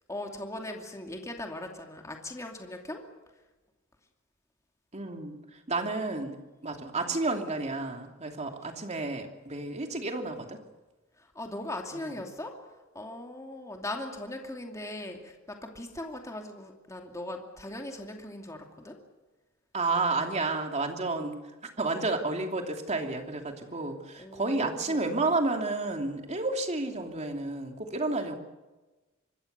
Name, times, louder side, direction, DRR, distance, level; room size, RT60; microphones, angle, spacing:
voice 1, 0.1-3.0 11.2-12.5 12.9-18.9 24.2-25.0, left 1 dB, 15° left, 2 dB, 2.6 m, -39 dB
voice 2, 4.9-10.6 12.1-12.2 19.7-21.5 21.8-28.4, right 3 dB, 35° right, 4 dB, 2.9 m, -31 dB
25.5 x 21.5 x 6.8 m, 1.2 s
head